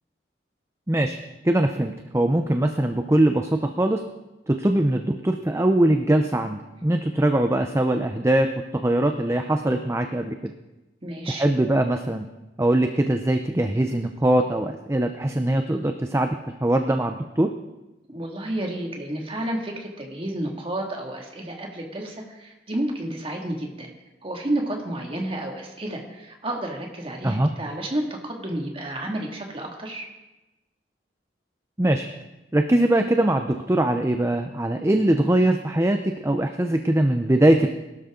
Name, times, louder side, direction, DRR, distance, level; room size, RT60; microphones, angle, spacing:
voice 1, 0.9-1.2 1.4-4.0 4.5-8.5 8.7-10.4 11.3-12.3 12.6-17.5 27.2-27.5 31.8-32.1 32.5-37.7, right 1 dB, 15° right, 6 dB, 0.6 m, -22 dB
voice 2, 11.0-11.5 18.1-23.9 24.2-30.1, right 1 dB, 30° right, 1 dB, 2.3 m, -31 dB
21.0 x 12.5 x 3.9 m, 1.0 s
head